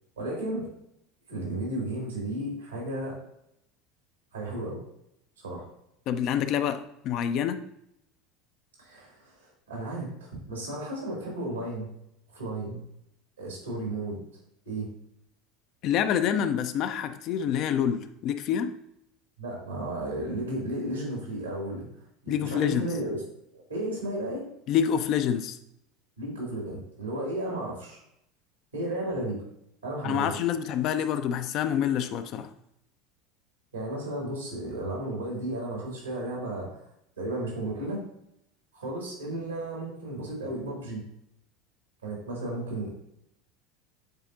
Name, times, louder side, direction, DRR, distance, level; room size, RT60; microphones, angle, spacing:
voice 1, 0.2-0.7 1.3-3.2 4.3-4.8 5.4-5.7 8.8-11.9 12.3-12.8 13.4-14.2 14.7-14.9 19.4-21.9 22.2-23.2 23.5-24.4 26.2-28.0 28.7-29.4 29.8-30.4 33.7-36.8 37.2-38.0 38.7-41.0 42.0-43.0, right 1 dB, 80° right, -2 dB, 2.5 m, -33 dB
voice 2, 6.1-7.6 15.8-18.7 22.3-22.9 24.7-25.6 30.0-32.5, left 9 dB, 50° left, 9 dB, 0.5 m, -27 dB
8.8 x 4.1 x 2.6 m, 0.78 s
figure-of-eight pair, 75°, 0 cm